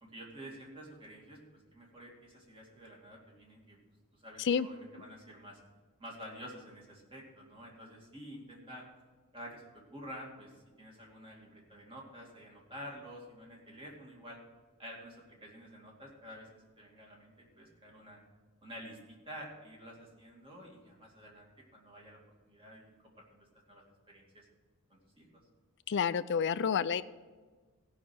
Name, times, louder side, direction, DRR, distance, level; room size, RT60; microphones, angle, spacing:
voice 1, 0.0-3.8 4.1-5.6 6.0-8.9 9.3-14.4 14.8-18.2 18.6-22.2 22.4-22.9 23.2-24.5 24.9-25.3, equal, 25° right, -2 dB, 2.5 m, -50 dB
voice 2, 25.9-27.0, left 7 dB, 55° left, 15 dB, 0.4 m, -29 dB
15.5 x 5.9 x 6.3 m, 1.4 s
head